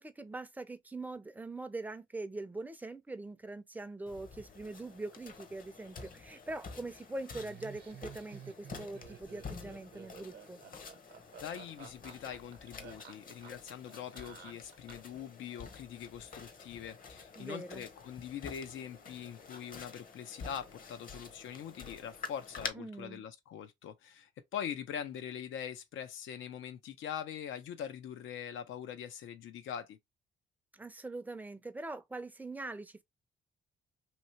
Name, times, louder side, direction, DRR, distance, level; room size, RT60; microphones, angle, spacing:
voice 1, 0.0-10.6 17.3-17.8 22.7-23.2 30.7-33.0, right 2 dB, 10° right, 0.6 m, -43 dB
sound 1, 4.1-22.7, left 4 dB, 45° left, 0.9 m, -49 dB
Laughter, 7.3-15.2, right 8 dB, 55° right, 0.9 m, -52 dB
voice 2, 11.4-30.0, left 9 dB, 80° left, 0.7 m, -43 dB
3.0 x 2.7 x 2.9 m
cardioid pair, 90°, 20 cm